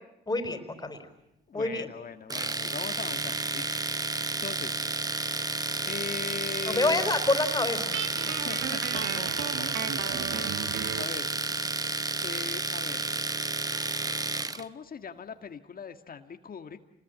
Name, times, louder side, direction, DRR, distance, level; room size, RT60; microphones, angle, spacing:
voice 1, 0.3-1.0 1.5-1.9 6.7-7.9, left 2 dB, 20° left, 8 dB, 4.6 m, -27 dB
voice 2, 1.5-4.1 4.4-4.8 5.9-7.1 8.2-10.5 11.0-11.3 12.2-13.1 14.5-16.8, left 6 dB, 45° left, 8 dB, 1.8 m, -40 dB
Domestic sounds home sounds, 2.3-14.6, right 3 dB, 20° right, 1.1 m, -31 dB
Guitar, 7.9-11.2, right 9 dB, 75° right, 1.5 m, -35 dB
28.5 x 21.0 x 9.3 m, 0.82 s
cardioid pair, 90°, 20 cm